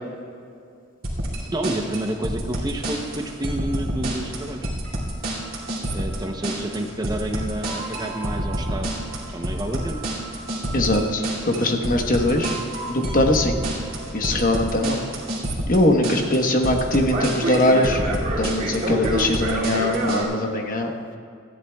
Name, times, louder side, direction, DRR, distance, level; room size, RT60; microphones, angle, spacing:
sound 1, 1.0-20.2, right 1 dB, 45° right, 2.4 m, -28 dB
voice 1, 1.5-4.7 5.9-8.9 9.3-10.0 14.3-14.5, right 1 dB, 20° right, 4 dB, 0.7 m, -29 dB
voice 2, 10.7-12.6 12.9-13.6 14.1-15.0 15.7-18.0 18.4-20.9, left 1 dB, 40° left, 3 dB, 1.1 m, -21 dB
19.5 x 13.5 x 2.3 m, 2.3 s
head